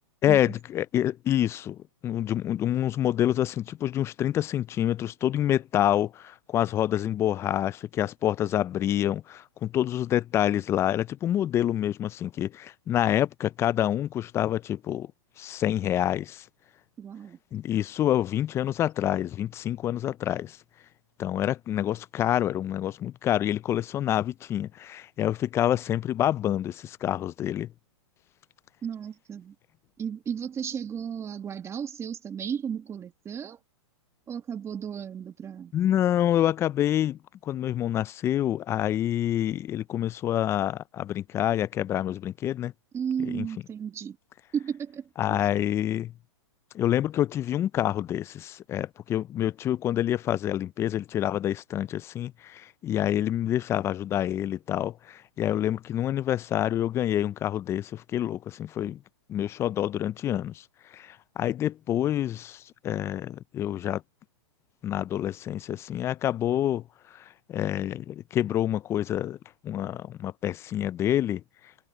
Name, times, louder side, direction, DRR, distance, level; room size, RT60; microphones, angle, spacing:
voice 1, 0.2-15.1 15.4-16.4 17.5-20.6 21.2-27.7 35.7-42.7 43.3-43.5 45.2-46.1 46.7-59.0 59.3-60.5 60.9-64.0 64.8-66.8 67.5-69.4 69.6-71.4, left 11 dB, 15° left, 0.4 m, -27 dB
voice 2, 17.0-17.4 28.8-29.5 30.0-33.6 34.3-35.7 42.9-44.2 44.5-45.4, right 8 dB, 15° right, 1.5 m, -34 dB
hypercardioid pair, 135°, 16 cm